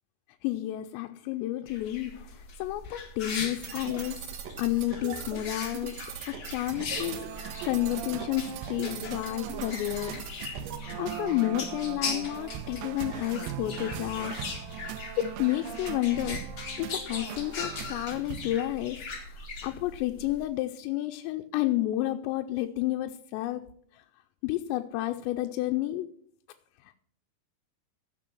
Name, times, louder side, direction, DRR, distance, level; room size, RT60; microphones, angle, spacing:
voice 1, 0.4-10.2 11.0-14.6 15.2-16.4 16.8-23.6 23.9-24.0 24.4-26.1 26.8-27.0, left 15 dB, 85° left, 2.8 m, -31 dB
sound 1, 1.7-20.4, left 3 dB, 50° left, 1.4 m, -40 dB
sound 2, 3.3-10.8, right 7 dB, 65° right, 2.6 m, -41 dB
sound 3, 6.7-18.6, right 10 dB, 80° right, 2.5 m, -40 dB
15.0 x 5.8 x 6.1 m
omnidirectional pair, 5.0 m